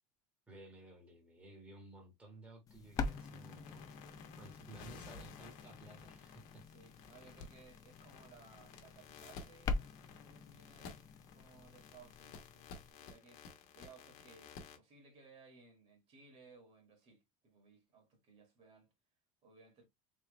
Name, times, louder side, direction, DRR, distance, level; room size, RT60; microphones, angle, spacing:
voice 1, 0.5-3.9 4.4-6.6, right 2 dB, 10° right, 1.4 m, -56 dB
sound 1, 2.7-12.9, left 4 dB, 20° left, 0.4 m, -45 dB
sound 2, 2.9-14.8, left 5 dB, 55° left, 1.2 m, -55 dB
voice 2, 6.7-9.9 10.2-11.0 11.3-13.4 13.7-18.9 19.4-19.8, right 4 dB, 40° right, 2.0 m, -61 dB
3.5 x 3.0 x 3.2 m
supercardioid pair, 140°, 16 cm